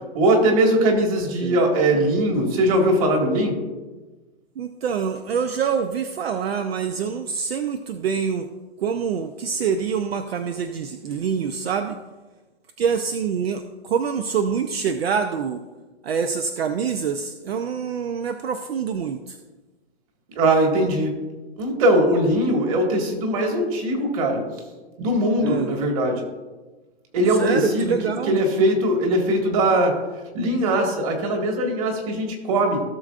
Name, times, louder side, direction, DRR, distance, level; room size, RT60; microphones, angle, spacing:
voice 1, 0.1-3.5 20.4-21.2 21.6-24.4 25.0-26.2 27.1-27.9 28.3-30.0 30.3-32.8, right 1 dB, 30° right, 2 dB, 1.9 m, -20 dB
voice 2, 4.6-8.5 8.8-12.0 12.8-15.6 16.0-19.4 25.4-25.7 27.4-28.4, right 6 dB, 65° right, 8 dB, 0.7 m, -25 dB
16.5 x 6.7 x 2.5 m, 1.2 s
hypercardioid pair, 160°, 33 cm